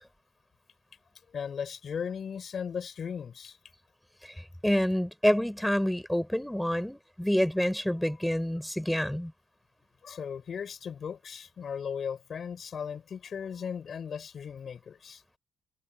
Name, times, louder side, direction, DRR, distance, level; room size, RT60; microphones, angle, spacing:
voice 1, 1.3-3.6 8.1-8.2 10.0-15.2, left 7 dB, 50° left, 6.0 m, -37 dB
voice 2, 4.2-9.3, equal, 5° left, 3.8 m, -28 dB
cardioid pair, 90°, 0 cm